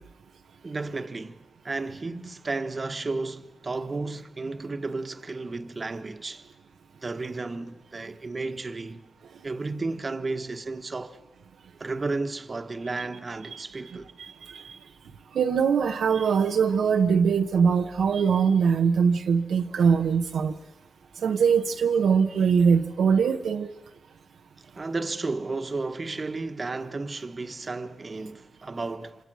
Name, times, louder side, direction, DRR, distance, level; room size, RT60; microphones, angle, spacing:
voice 1, 0.6-6.5 7.0-9.0 9.4-11.2 11.8-14.1 24.6-29.2, right 3 dB, 45° right, 1.3 m, -33 dB
voice 2, 15.4-20.5 21.2-23.7, right 6 dB, 85° right, 0.9 m, -22 dB
26.5 x 25.5 x 6.2 m
cardioid pair, 55°, 0 cm